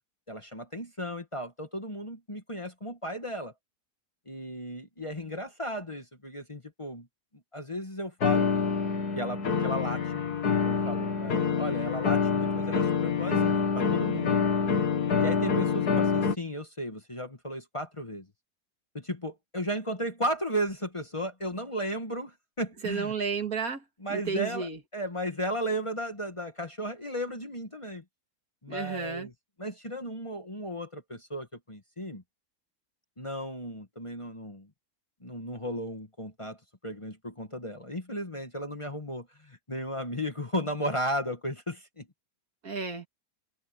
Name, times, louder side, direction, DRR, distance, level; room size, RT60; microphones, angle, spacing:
voice 1, 0.3-3.5 4.3-7.1 7.5-8.5 9.1-10.4 10.6-14.4 15.2-18.2 18.9-23.1 24.0-28.0 28.6-29.3 29.6-32.2 33.2-34.7 35.2-42.1, equal, 20° left, 1.5 m, -35 dB
sound 1, 8.2-16.4, left 6 dB, 90° left, 2.5 m, -26 dB
voice 2, 22.8-23.8 24.1-24.8 28.7-29.3 42.6-43.1, right 5 dB, 70° right, 2.4 m, -32 dB
omnidirectional pair, 1.6 m